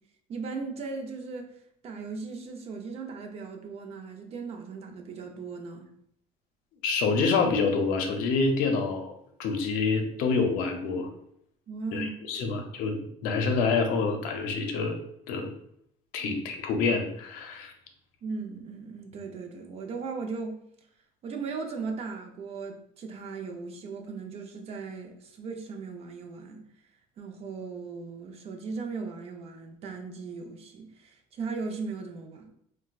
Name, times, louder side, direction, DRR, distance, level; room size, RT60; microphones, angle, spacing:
voice 1, 0.3-5.9 11.7-12.7 16.2-16.3 18.2-20.7 21.2-26.6 27.2-32.5, right 4 dB, 45° right, 0.6 m, -38 dB
voice 2, 6.8-9.1 9.4-11.1 11.9-15.0 15.3-15.5 16.1-17.7, left 4 dB, 75° left, 0.6 m, -27 dB
4.3 x 2.2 x 2.3 m
cardioid pair, 120°, 15 cm